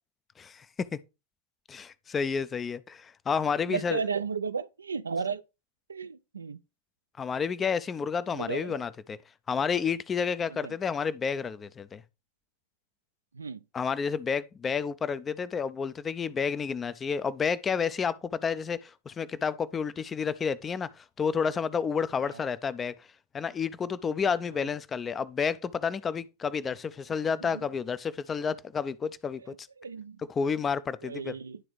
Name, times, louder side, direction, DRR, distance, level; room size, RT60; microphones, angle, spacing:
voice 1, 0.4-1.0 1.7-4.1 7.2-9.2 9.5-12.0 13.7-22.9 23.3-29.7 30.2-31.3, left 6 dB, 20° left, 0.4 m, -30 dB
voice 2, 3.7-5.4 5.9-6.6 8.3-8.8 10.6-10.7 13.4-13.6 27.4-27.5 29.8-30.2 31.0-31.6, right 5 dB, 75° right, 0.3 m, -33 dB
11.5 x 3.8 x 3.1 m
figure-of-eight pair, 90°, 0 cm